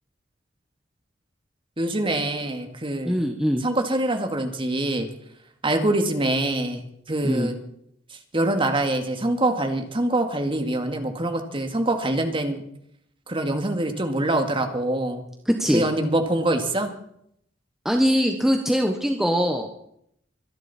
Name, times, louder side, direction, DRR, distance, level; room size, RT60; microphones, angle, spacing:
voice 1, 1.8-3.1 3.6-5.1 5.6-7.5 8.3-12.6 13.3-15.2 15.7-16.9, right 1 dB, 25° right, 5 dB, 2.2 m, -24 dB
voice 2, 3.0-3.6 7.2-7.5 15.4-15.9 17.8-19.7, equal, ahead, 3 dB, 1.2 m, -22 dB
24.5 x 11.0 x 4.4 m, 0.71 s
head